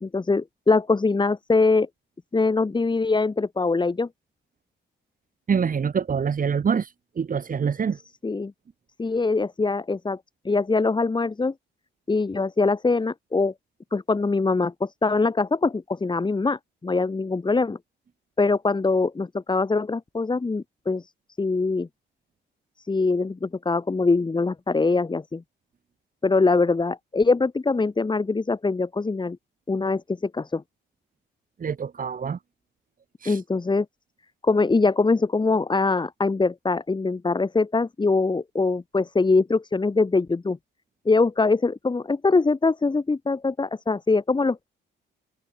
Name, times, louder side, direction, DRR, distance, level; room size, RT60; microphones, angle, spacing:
voice 1, 0.0-1.9 2.3-4.1 8.2-8.5 9.0-10.2 10.4-11.5 12.1-13.5 13.9-17.8 18.4-21.1 21.4-21.9 22.9-25.4 26.2-29.4 29.7-30.6 33.3-33.9 34.4-40.6 41.1-44.7, left 3 dB, 25° left, 2.3 m, -23 dB
voice 2, 5.5-8.0 31.6-32.4 33.2-33.4, right 6 dB, 45° right, 3.8 m, -25 dB
cardioid pair, 90°, 20 cm